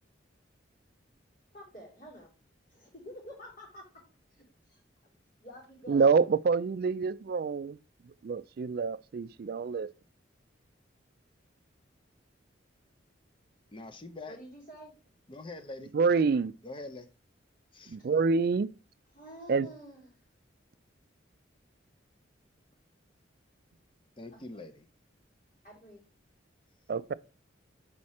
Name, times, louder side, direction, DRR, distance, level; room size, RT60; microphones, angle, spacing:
voice 1, 1.5-2.3 2.7-4.0 4.3-5.1 5.4-6.0 14.3-14.9 19.1-20.2 24.3-24.4 25.6-26.0, equal, 45° left, 3.0 m, -49 dB
voice 2, 5.9-7.8 8.0-9.9 15.9-16.5 17.9-18.7 19.5-19.7 26.9-27.1, right 5 dB, 50° right, 0.3 m, -27 dB
voice 3, 13.7-14.4 15.3-15.9 16.6-17.1 17.7-18.0 24.2-24.9, left 2 dB, 25° left, 0.6 m, -44 dB
6.4 x 4.2 x 4.2 m
head